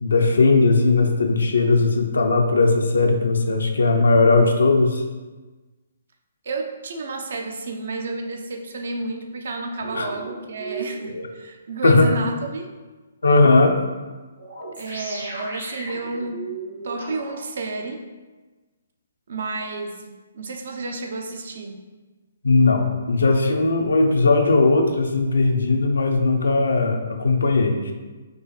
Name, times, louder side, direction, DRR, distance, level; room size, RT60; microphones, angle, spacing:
voice 1, 0.0-5.0 9.9-10.1 11.8-12.1 13.2-13.8 22.4-27.9, left 3 dB, 65° left, 4 dB, 0.5 m, -18 dB
voice 2, 6.4-12.7 14.8-16.5 16.8-18.1 19.3-21.8, right 2 dB, 55° right, 4 dB, 0.4 m, -31 dB
sound 1, 9.8-11.2 12.1-12.2 14.4-17.3, right 3 dB, 80° right, 1.2 m, -35 dB
5.1 x 2.0 x 3.2 m, 1.3 s
figure-of-eight pair, 130°, 0 cm